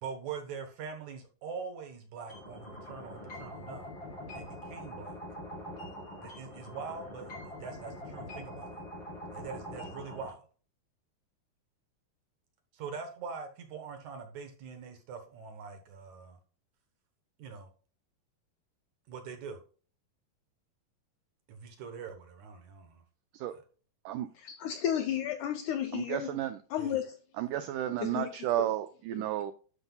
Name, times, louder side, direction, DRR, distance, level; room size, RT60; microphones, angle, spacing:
voice 1, 0.0-3.9 4.3-5.2 6.2-8.8 9.3-10.5 12.7-16.4 17.4-17.7 19.1-19.6 21.5-23.0 23.5-23.6 26.8-26.9, right 5 dB, 65° right, 2.1 m, -43 dB
sound 1, 2.3-10.3, left 1 dB, 40° left, 3.5 m, -44 dB
voice 2, 24.4-26.3 26.7-27.2 28.0-28.3 28.6-28.7, left 10 dB, 85° left, 1.8 m, -32 dB
voice 3, 25.9-26.6 27.4-29.5, right 13 dB, 90° right, 1.8 m, -32 dB
11.5 x 5.5 x 2.3 m
omnidirectional pair, 4.2 m